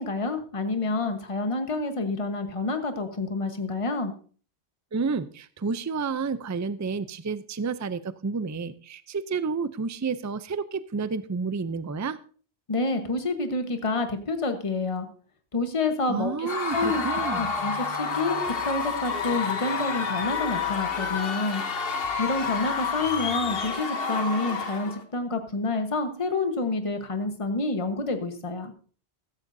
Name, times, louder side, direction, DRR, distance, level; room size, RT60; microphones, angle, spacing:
voice 1, 0.0-4.1 12.7-15.1 15.5-21.6 22.2-28.7, left 3 dB, 30° left, 7 dB, 1.3 m, -28 dB
voice 2, 4.9-12.2 16.1-17.5, right 4 dB, 25° right, 14 dB, 0.4 m, -30 dB
Screaming / Cheering / Crowd, 16.5-25.0, left 5 dB, 60° left, 1.3 m, -29 dB
sound 1, 16.7-23.9, right 1 dB, 5° left, 1.4 m, -49 dB
15.0 x 14.0 x 2.7 m, 0.40 s
omnidirectional pair, 1.1 m